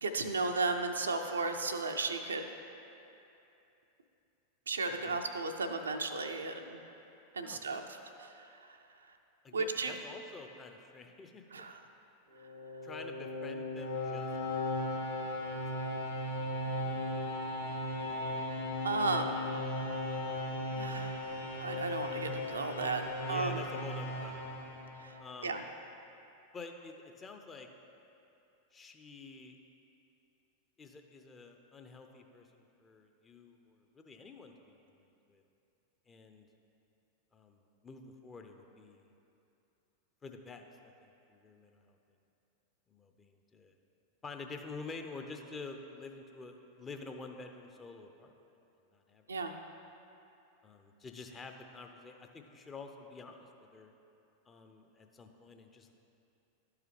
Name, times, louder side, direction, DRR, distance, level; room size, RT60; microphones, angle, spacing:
voice 1, 0.0-2.5 4.7-6.8 7.3-8.8 9.5-9.9 11.5-11.8 16.8-16.9 18.8-19.3 20.8-23.6 25.0-25.6 49.3-49.5, right 3 dB, 75° right, 5 dB, 0.4 m, -35 dB
voice 2, 7.4-7.8 9.4-11.7 12.8-14.3 14.7-17.0 23.2-24.4 25.2-25.6 26.5-27.7 28.7-29.6 30.8-35.4 36.1-36.5 37.3-39.1 40.2-42.0 42.9-43.7 44.2-48.3 48.9-49.4 50.6-53.9 54.5-55.9, left 4 dB, 20° left, 5 dB, 0.6 m, -49 dB
sound 1, 12.3-25.3, left 1 dB, 85° left, 1.4 m, -37 dB
12.0 x 4.8 x 3.3 m, 2.8 s
figure-of-eight pair, 90°, 0 cm